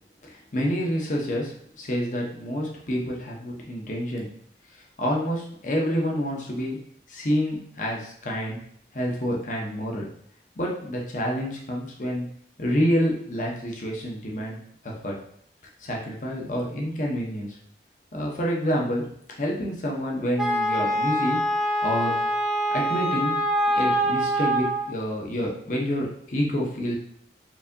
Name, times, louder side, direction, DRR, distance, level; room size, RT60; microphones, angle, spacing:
voice 1, 0.2-4.3 5.0-6.8 7.1-8.6 8.9-10.1 10.6-12.3 12.6-15.1 15.8-17.6 18.1-19.0 19.3-21.4 21.8-22.1 22.7-23.4 23.8-26.9, equal, 45° left, -2 dB, 0.8 m, -28 dB
Wind instrument woodwind instrument, 20.4-24.9, equal, ahead, 0.5 m, -24 dB
4.6 x 2.7 x 2.6 m, 0.65 s
head